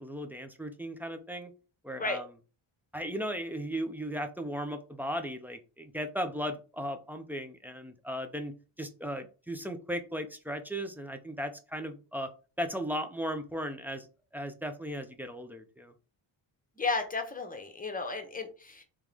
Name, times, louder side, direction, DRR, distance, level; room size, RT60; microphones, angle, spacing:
voice 1, 0.0-1.5 1.8-2.3 2.9-12.3 12.6-14.1 14.3-15.9, equal, 5° right, 7 dB, 0.5 m, -36 dB
voice 2, 16.8-18.8, left 3 dB, 15° left, 5 dB, 0.9 m, -33 dB
3.6 x 3.0 x 3.3 m, 0.34 s
cardioid pair, 100°, 48 cm